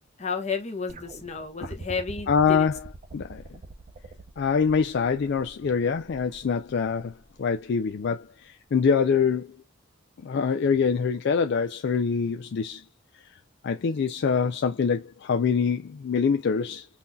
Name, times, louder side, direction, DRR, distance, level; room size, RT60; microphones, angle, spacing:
voice 1, 0.2-2.7, left 5 dB, 35° left, 1.1 m, -32 dB
sound 1, 0.9-8.1 9.2-9.3, right 3 dB, 35° right, 0.6 m, -44 dB
voice 2, 2.3-2.8 3.1-3.4 4.4-9.6 10.2-12.8 13.6-16.9, left 6 dB, 60° left, 0.4 m, -25 dB
5.6 x 2.7 x 2.2 m
head